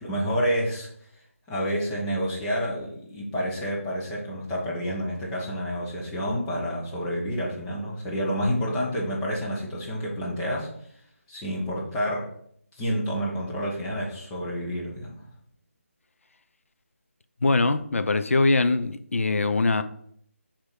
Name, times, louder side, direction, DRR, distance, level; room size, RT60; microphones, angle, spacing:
voice 1, 0.0-0.9 1.5-10.7 11.3-12.3 12.7-15.2, equal, 10° left, 1.2 m, -29 dB
voice 2, 17.4-19.8, left 3 dB, 65° left, 0.6 m, -22 dB
6.8 x 3.0 x 5.1 m
figure-of-eight pair, 160°, 8 cm